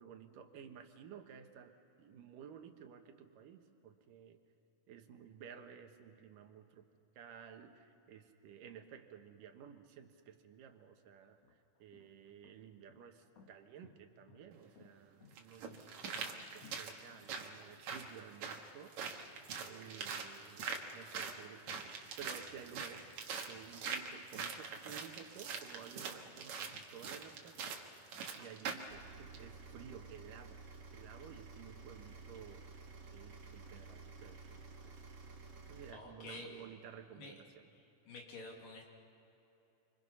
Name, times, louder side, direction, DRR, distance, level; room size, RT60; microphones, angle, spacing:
voice 1, 0.0-4.4 4.9-6.9 7.2-11.4 11.8-19.3 19.6-23.1 23.4-27.7 28.4-30.6 30.9-32.8 33.1-35.0 35.7-37.7, right 8 dB, 80° right, 6 dB, 2.9 m, -54 dB
sound 1, 10.5-10.6 11.3-17.8, left 5 dB, 55° left, 2.3 m, -62 dB
sound 2, 14.5-14.6 15.4-28.9 29.3-29.4, right 5 dB, 65° right, 2.7 m, -44 dB
sound 3, 28.9-35.9, right 4 dB, 45° right, 3.2 m, -53 dB
voice 2, 35.9-36.6 37.1-37.3 38.1-38.8, left 2 dB, 80° left, 0 dB, 4.5 m, -49 dB
27.5 x 25.5 x 5.7 m, 2.9 s
omnidirectional pair, 3.8 m